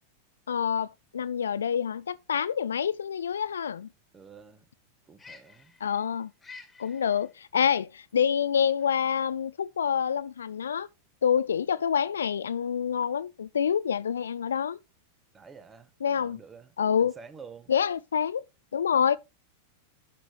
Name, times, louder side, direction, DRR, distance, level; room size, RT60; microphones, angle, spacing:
voice 1, 0.5-3.9 5.8-6.3 6.8-10.9 11.2-14.8 16.0-16.4 16.8-17.2 17.7-18.4 18.7-19.2, left 7 dB, 70° left, 0.5 m, -27 dB
sound 1, 1.0-15.3, left 4 dB, 10° left, 2.2 m, -56 dB
voice 2, 4.1-4.6 5.1-5.7 15.3-16.7 17.0-17.7, right 5 dB, 20° right, 1.4 m, -49 dB
12.0 x 6.6 x 3.1 m
figure-of-eight pair, 90°, 0 cm